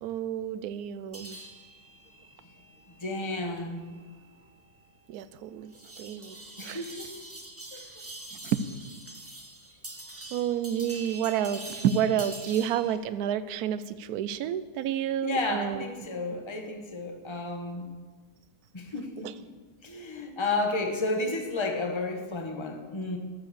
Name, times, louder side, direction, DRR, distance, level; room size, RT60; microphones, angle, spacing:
voice 1, 0.0-1.4 5.1-6.4 6.6-6.8 8.4-8.6 10.3-15.8 19.2-19.3, right 9 dB, 70° right, 13 dB, 1.1 m, -30 dB
sound 1, 1.1-13.0, right 2 dB, 10° right, 1.2 m, -45 dB
voice 2, 3.0-3.8 6.6-7.1 7.7-7.8 15.2-17.9 18.7-19.3 19.8-23.2, left 2 dB, 20° left, 4 dB, 1.1 m, -32 dB
12.0 x 8.1 x 6.8 m, 1.4 s
omnidirectional pair, 1.8 m